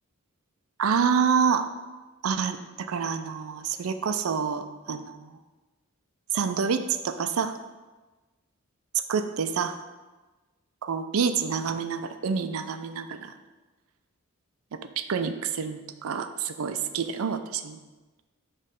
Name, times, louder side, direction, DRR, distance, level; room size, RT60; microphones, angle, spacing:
voice 1, 0.8-1.7 2.2-5.4 6.3-7.6 9.1-9.8 10.8-13.3 15.0-17.8, right 6 dB, 75° right, 9 dB, 0.4 m, -27 dB
6.5 x 3.2 x 5.1 m, 1.2 s
head